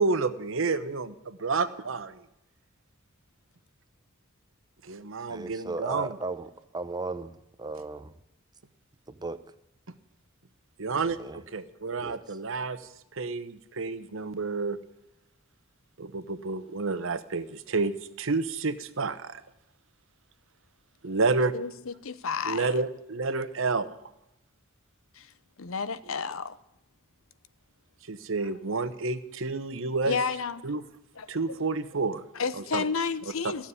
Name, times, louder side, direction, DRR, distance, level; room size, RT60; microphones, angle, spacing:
voice 1, 0.0-2.1 4.8-6.1 10.8-11.2 11.5-12.8 13.1-14.8 16.0-19.4 21.0-21.5 22.4-24.0 26.2-26.3 28.1-30.2 30.6-30.8 31.3-32.2 32.5-32.8 33.4-33.5, right 3 dB, 65° right, 0.9 m, -29 dB
voice 2, 5.3-8.2 9.1-9.4 10.9-11.4 12.0-12.4, right 3 dB, 20° right, 0.7 m, -36 dB
voice 3, 21.5-22.7 25.1-25.3 25.6-26.6 30.1-30.7 31.2-31.6 32.3-33.7, left 5 dB, 70° left, 0.8 m, -31 dB
15.0 x 7.3 x 9.7 m
head